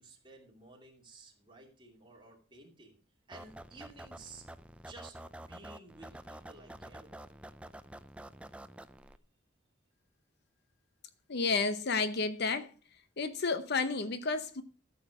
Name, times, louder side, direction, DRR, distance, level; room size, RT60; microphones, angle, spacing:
voice 1, 0.0-3.0 3.3-4.5 4.7-7.3, right 3 dB, 25° right, 2.7 m, -54 dB
sound 1, 3.3-9.2, right 1 dB, 5° right, 0.4 m, -49 dB
voice 2, 11.3-12.7 13.2-14.6, left 4 dB, 55° left, 0.8 m, -31 dB
13.0 x 6.9 x 5.0 m
head